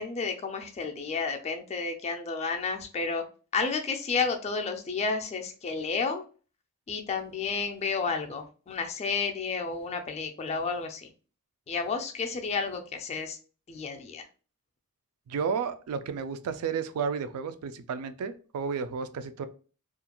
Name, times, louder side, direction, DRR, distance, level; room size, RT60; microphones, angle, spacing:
voice 1, 0.0-3.2 3.5-6.2 6.9-11.1 11.7-13.4 13.7-14.3, left 4 dB, 30° left, 5 dB, 0.3 m, -31 dB
voice 2, 15.3-19.5, right 6 dB, 80° right, 11 dB, 0.3 m, -32 dB
2.4 x 2.2 x 2.9 m, 0.37 s
head